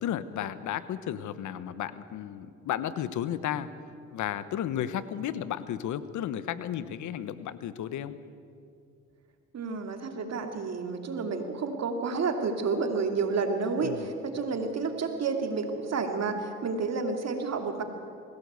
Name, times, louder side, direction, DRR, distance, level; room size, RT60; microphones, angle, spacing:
voice 1, 0.0-3.7 4.1-8.1 13.8-14.1, left 10 dB, 85° left, 14 dB, 1.0 m, -33 dB
voice 2, 9.5-17.8, right 4 dB, 60° right, 5 dB, 2.7 m, -30 dB
21.5 x 17.0 x 8.2 m, 2.5 s
cardioid pair, 75°, 29 cm